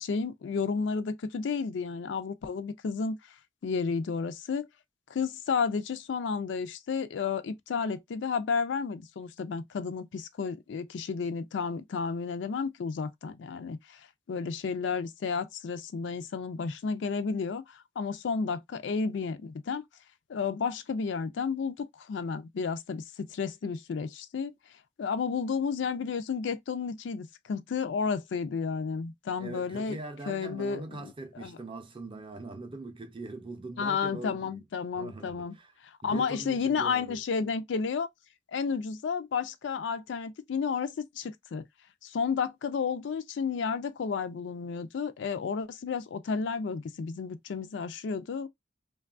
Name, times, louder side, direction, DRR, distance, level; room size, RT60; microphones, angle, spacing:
voice 1, 0.0-3.2 3.6-4.7 5.1-19.8 20.3-24.5 25.0-30.0 30.3-31.1 31.4-31.6 33.8-35.6 35.8-38.1 38.5-41.6 42.0-48.5, left 5 dB, 70° left, 0.4 m, -32 dB
voice 2, 29.4-34.6 34.9-35.7 36.0-37.2, right 2 dB, 25° right, 0.5 m, -42 dB
2.9 x 2.3 x 2.4 m
head